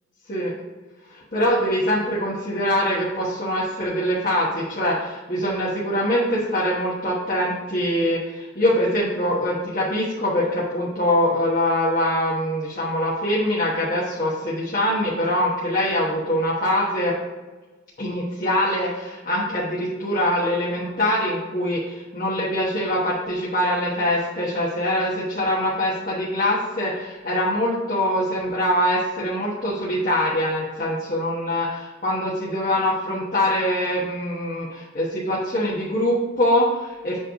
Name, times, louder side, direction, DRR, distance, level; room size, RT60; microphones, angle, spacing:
voice 1, 1.1-17.1 18.0-37.2, left 1 dB, 40° left, -7 dB, 1.3 m, -23 dB
7.8 x 3.1 x 5.1 m, 1.3 s
head